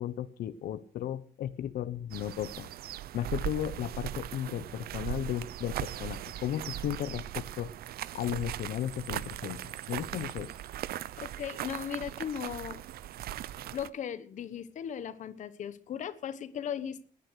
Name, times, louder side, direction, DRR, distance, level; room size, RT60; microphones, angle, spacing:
voice 1, 0.0-2.7 3.1-7.7 8.1-9.6 9.9-10.5, left 11 dB, 85° left, 13 dB, 1.0 m, -35 dB
sound 1, 2.1-13.9, right 12 dB, 90° right, 0.7 m, -39 dB
voice 2, 11.2-12.8 13.7-17.0, left 8 dB, 55° left, 13 dB, 1.2 m, -37 dB
20.0 x 10.0 x 6.5 m, 0.43 s
wide cardioid pair, 180°, 15 cm